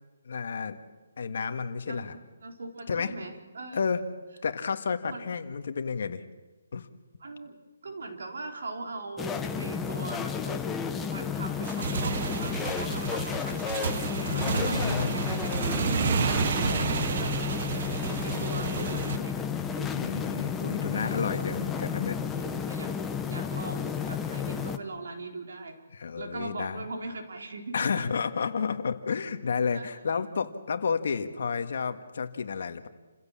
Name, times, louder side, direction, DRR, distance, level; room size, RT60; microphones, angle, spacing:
voice 1, 0.3-0.8 1.2-2.2 2.9-3.1 3.7-4.0 4.4-6.2 6.7-6.9 14.3-15.4 16.7-16.8 19.9-22.2 25.9-26.9 27.7-32.9, left 5 dB, 55° left, 8 dB, 1.7 m, -31 dB
voice 2, 2.4-3.8 5.1-5.2 7.2-7.6 7.8-10.6 11.1-15.9 16.2-17.3 18.0-19.4 19.7-19.9 20.9-21.2 22.4-22.9 23.3-25.8 26.2-27.9 29.7-29.9 30.1-30.3, right 3 dB, 65° right, 2 dB, 4.1 m, -40 dB
sound 1, 9.2-24.8, left 7 dB, 5° left, 0.8 m, -32 dB
Motorcycle / Engine, 11.5-19.2, right 6 dB, 40° right, 0.9 m, -31 dB
29.0 x 16.0 x 7.5 m, 1.2 s
hypercardioid pair, 170°, 0 cm